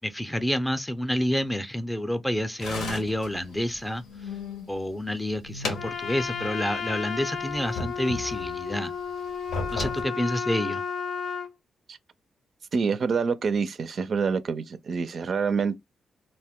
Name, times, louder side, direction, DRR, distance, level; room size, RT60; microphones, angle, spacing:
voice 1, 0.0-4.0 4.7-8.9 9.7-10.8, equal, 10° left, 0.5 m, -28 dB
sound 1, 2.6-4.7 5.1-6.5 6.8-6.9 7.5-8.7 9.3-10.0, left 3 dB, 90° left, 0.9 m, -36 dB
Trumpet, 5.7-11.5, left 6 dB, 60° left, 0.6 m, -33 dB
voice 2, 12.7-15.8, right 5 dB, 60° right, 0.4 m, -26 dB
2.5 x 2.1 x 3.5 m
cardioid pair, 65°, 0 cm